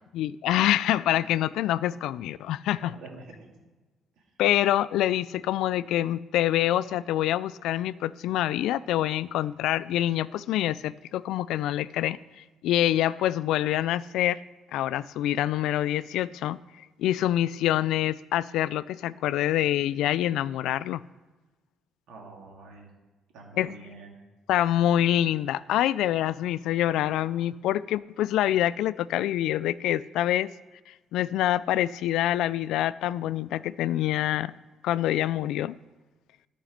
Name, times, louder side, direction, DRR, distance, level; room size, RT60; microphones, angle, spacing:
voice 1, 0.1-3.0 4.4-14.4 14.7-16.6 17.0-21.0 23.6-23.8 24.5-30.5 31.1-34.5 34.8-35.8, left 13 dB, 75° left, 0.3 m, -26 dB
voice 2, 2.8-3.6 22.1-22.9 23.3-24.1, right 3 dB, 80° right, 2.2 m, -46 dB
13.0 x 5.1 x 5.1 m
cardioid pair, 145°, 0 cm